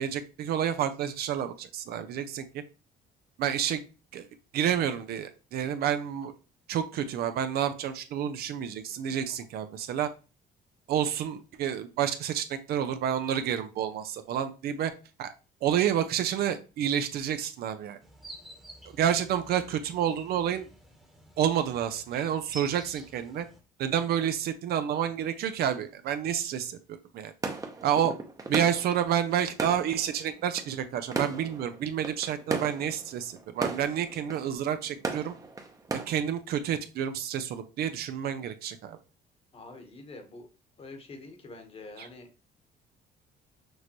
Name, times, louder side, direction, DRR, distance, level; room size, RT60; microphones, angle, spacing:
voice 1, 0.0-2.6 3.4-3.8 4.1-4.3 4.5-6.3 6.7-10.1 10.9-14.9 15.2-15.3 15.6-18.0 18.9-20.7 21.4-23.5 23.8-26.8 27.1-27.3 27.8-28.1 28.5-35.3 35.9-39.0, right 9 dB, 70° right, 9 dB, 0.6 m, -29 dB
sound 1, 18.0-23.6, right 1 dB, ahead, 1.1 m, -49 dB
sound 2, 27.4-36.1, right 3 dB, 20° right, 0.8 m, -37 dB
voice 2, 39.5-40.5 40.8-42.4, left 3 dB, 35° left, 5 dB, 1.2 m, -46 dB
6.3 x 2.6 x 3.0 m, 0.32 s
cardioid pair, 110°, 17 cm